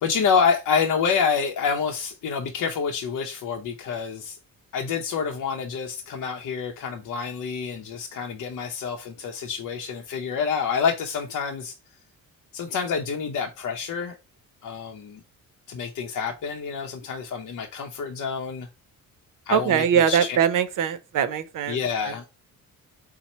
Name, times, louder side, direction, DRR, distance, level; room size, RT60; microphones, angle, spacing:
voice 1, 0.0-4.4 4.7-11.8 12.5-14.2 14.6-15.2 15.7-18.7 19.5-20.4 21.7-22.2, left 6 dB, 60° left, 0.7 m, -27 dB
voice 2, 19.5-21.8 22.0-22.3, right 8 dB, 65° right, 0.7 m, -22 dB
4.2 x 2.1 x 4.1 m
cardioid pair, 90°, 34 cm